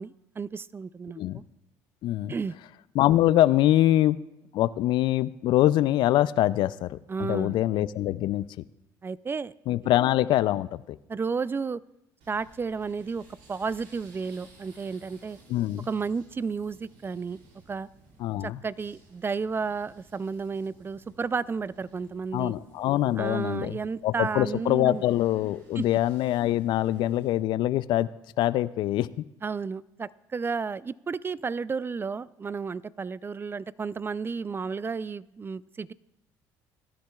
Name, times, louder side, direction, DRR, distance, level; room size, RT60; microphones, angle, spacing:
voice 1, 0.0-1.4 2.3-2.5 7.1-7.6 9.0-9.5 11.1-11.8 12.3-15.4 15.9-17.4 17.7-17.9 18.4-22.5 23.2-25.0 25.8-25.9 29.4-35.9, right 5 dB, 25° right, 20 dB, 0.3 m, -32 dB
voice 2, 2.0-2.3 2.9-4.2 4.5-8.5 9.7-10.8 15.5-15.9 18.2-18.6 22.3-28.1 28.4-29.1, left 14 dB, 65° left, 18 dB, 0.4 m, -24 dB
sound 1, 12.2-27.3, right 2 dB, 75° right, 2.4 m, -57 dB
20.5 x 10.0 x 2.3 m, 0.87 s
supercardioid pair, 70°, 9 cm